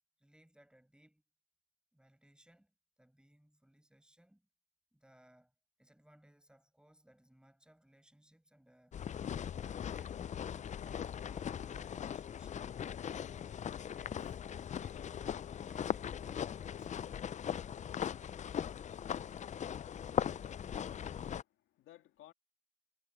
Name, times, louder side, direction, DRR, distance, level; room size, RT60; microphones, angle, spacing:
voice 1, 0.2-1.2 1.9-4.5 4.9-9.0 9.5-10.2 10.5-12.7 13.2-14.4 14.7-17.2, right 1 dB, 5° right, 5.3 m, -66 dB
sound 1, 8.9-21.4, left 8 dB, 35° left, 0.4 m, -39 dB
voice 2, 20.5-22.3, left 14 dB, 85° left, 2.2 m, -61 dB
cardioid pair, 90°, 20 cm